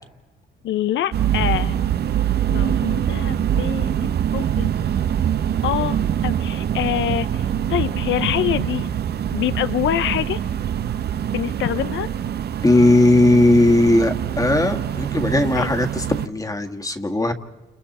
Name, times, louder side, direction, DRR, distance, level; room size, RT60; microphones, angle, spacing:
voice 1, 0.6-1.8 2.5-4.7 5.6-8.9 9.3-10.4 11.3-12.1 15.5-15.7, left 12 dB, 70° left, 14 dB, 0.7 m, -25 dB
sound 1, 1.1-16.3, right 9 dB, 55° right, 0.8 m, -24 dB
voice 2, 12.6-17.3, left 2 dB, 15° left, 5 dB, 1.9 m, -17 dB
29.5 x 28.5 x 4.3 m, 1.2 s
cardioid pair, 90°, 20 cm